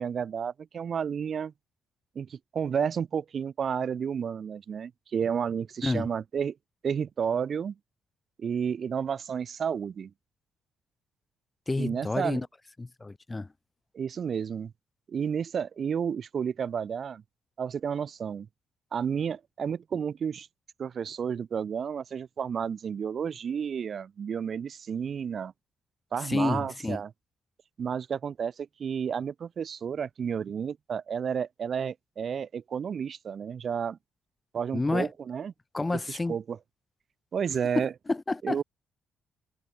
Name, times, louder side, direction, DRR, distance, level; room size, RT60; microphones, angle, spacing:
voice 1, 0.0-1.5 2.2-6.5 6.8-7.7 8.4-10.1 11.8-12.4 13.9-14.7 15.1-17.2 17.6-18.5 18.9-20.5 20.8-25.5 26.1-27.1 27.8-34.0 34.5-35.5 36.1-36.6 37.3-37.9 38.4-38.6, right 7 dB, 50° right, 2.0 m, -31 dB
voice 2, 11.7-12.5 12.8-13.5 26.2-27.0 34.7-35.1 35.7-36.4 37.8-38.6, left 2 dB, 20° left, 1.8 m, -29 dB
cardioid pair, 90°, 0 cm